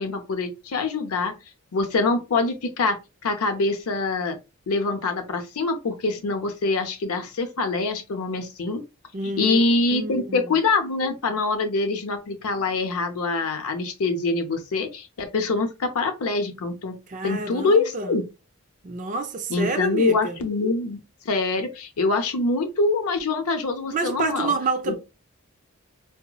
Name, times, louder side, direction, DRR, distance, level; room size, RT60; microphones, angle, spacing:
voice 1, 0.0-1.3 1.7-3.0 3.2-4.4 4.7-8.8 9.4-17.0 17.2-18.2 19.5-21.0 21.3-24.5 24.9-25.0, left 3 dB, 85° left, 0.6 m, -24 dB
voice 2, 9.1-9.6 9.9-10.5 17.1-18.1 18.8-20.4 23.9-25.0, right 3 dB, 35° right, 0.4 m, -28 dB
3.9 x 2.0 x 2.2 m
head